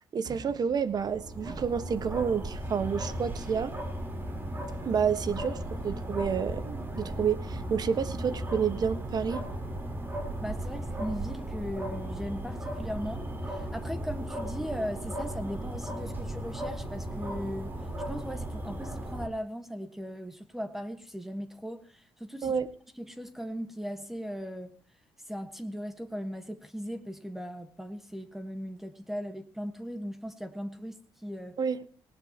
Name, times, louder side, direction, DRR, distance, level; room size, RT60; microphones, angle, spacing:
voice 1, 0.1-3.7 4.8-9.4 22.4-22.7 31.6-31.8, right 6 dB, 45° right, 1.4 m, -29 dB
sound 1, 0.7-19.3, right 1 dB, 25° right, 4.0 m, -36 dB
voice 2, 10.4-17.7 18.1-22.5 23.0-24.8 25.3-31.6, equal, 5° right, 1.6 m, -38 dB
19.0 x 19.0 x 3.0 m
cardioid pair, 110°, 9 cm